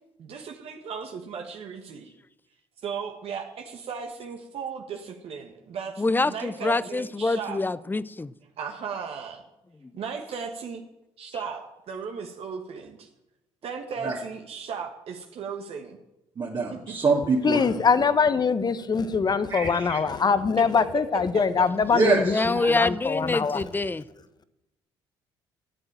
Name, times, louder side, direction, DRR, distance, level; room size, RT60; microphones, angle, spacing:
voice 1, 0.2-2.1 2.8-7.6 8.6-9.4 9.9-10.8 11.2-13.1 13.6-16.0 16.7-16.9 20.6-20.7 21.3-21.4 21.9-22.0 22.5-22.7, right 6 dB, 65° right, 1.6 m, -36 dB
voice 2, 6.0-8.3 22.3-24.0, left 3 dB, 20° left, 0.6 m, -25 dB
voice 3, 16.4-17.7 18.0-18.1 19.5-20.0 21.9-22.4, right 4 dB, 45° right, 2.4 m, -25 dB
voice 4, 17.4-23.6, left 5 dB, 40° left, 1.1 m, -23 dB
12.0 x 7.7 x 9.0 m
supercardioid pair, 75°, 11 cm